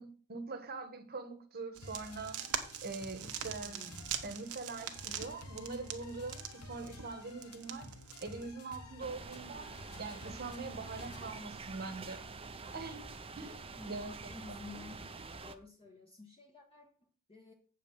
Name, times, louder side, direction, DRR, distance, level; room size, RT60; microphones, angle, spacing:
voice 1, 0.0-2.4 2.8-3.9 4.2-7.9 8.2-12.2 12.7-13.1 13.3-13.5 13.9-14.6, right 3 dB, 45° right, 1.3 m, -43 dB
Hes Coming, 1.8-11.4, left 2 dB, 75° left, 1.4 m, -52 dB
sound 1, 1.8-8.5, right 9 dB, 80° right, 1.1 m, -43 dB
voice 2, 3.6-4.3 13.7-15.1 15.4-17.5, left 3 dB, 25° left, 1.3 m, -52 dB
sound 2, 9.0-15.6, right 4 dB, 25° right, 0.7 m, -47 dB
8.0 x 5.0 x 7.2 m
head